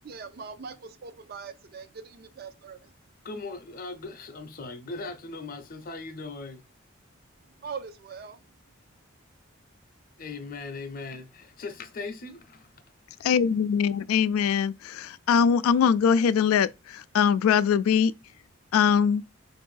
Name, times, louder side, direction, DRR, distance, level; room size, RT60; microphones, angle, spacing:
voice 1, 0.0-2.9 7.6-8.4, right 5 dB, 45° right, 0.4 m, -41 dB
voice 2, 3.2-6.6 10.2-12.9, left 3 dB, 45° left, 0.6 m, -39 dB
voice 3, 13.2-18.1 18.7-19.2, left 7 dB, 90° left, 0.3 m, -22 dB
4.3 x 2.6 x 3.1 m
head